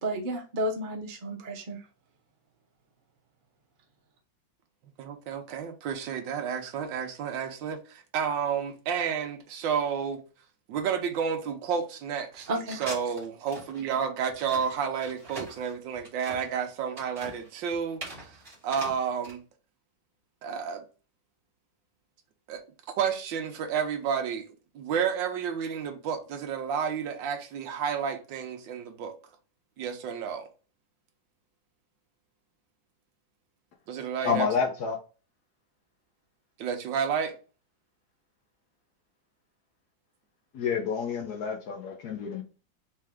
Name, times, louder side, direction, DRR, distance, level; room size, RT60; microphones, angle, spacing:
voice 1, 0.0-1.8 12.5-12.8, right 1 dB, 50° right, 0.5 m, -32 dB
voice 2, 5.0-10.2 10.7-12.5 12.8-18.4 18.6-19.4 20.4-20.8 22.5-22.6 23.0-24.5 24.7-29.1 29.8-30.5 33.9-34.5 36.6-37.4, right 7 dB, 70° right, 1.5 m, -31 dB
sound 1, 12.3-19.3, right 2 dB, 25° right, 1.9 m, -43 dB
voice 3, 34.2-35.0 40.5-42.4, left 6 dB, 60° left, 1.2 m, -29 dB
4.3 x 3.4 x 3.5 m
omnidirectional pair, 2.2 m